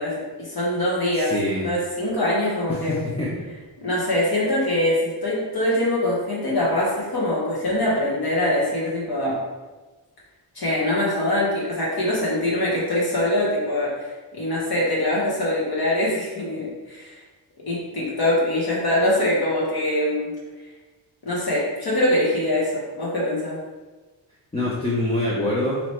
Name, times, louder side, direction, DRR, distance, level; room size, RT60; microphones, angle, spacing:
voice 1, 0.0-1.3 1.6-2.9 3.8-9.4 10.5-17.2 17.7-20.3 21.2-23.6, left 1 dB, 50° left, -6 dB, 1.0 m, -23 dB
voice 2, 1.1-1.7 2.7-3.3 24.5-25.8, left 1 dB, 15° left, -7 dB, 0.5 m, -25 dB
3.1 x 2.9 x 4.2 m, 1.2 s
wide cardioid pair, 135°, 47 cm